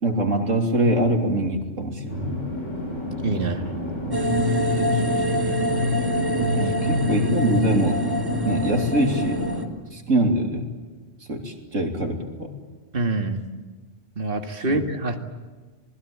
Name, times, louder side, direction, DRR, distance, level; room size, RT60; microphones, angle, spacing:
voice 1, 0.0-2.4 4.8-5.8 6.6-8.0 8.5-9.4 9.9-10.7 11.3-12.5 14.7-14.8, right 1 dB, 85° right, 3 dB, 3.5 m, -24 dB
sound 1, 2.1-9.6, equal, 65° left, 6.0 m, -30 dB
voice 2, 3.2-3.6 12.9-13.4 14.2-15.2, right 2 dB, 45° right, 5 dB, 2.2 m, -25 dB
sound 2, 4.1-9.6, left 1 dB, 20° right, 1.6 m, -24 dB
27.0 x 20.5 x 8.7 m, 1.3 s
omnidirectional pair, 1.3 m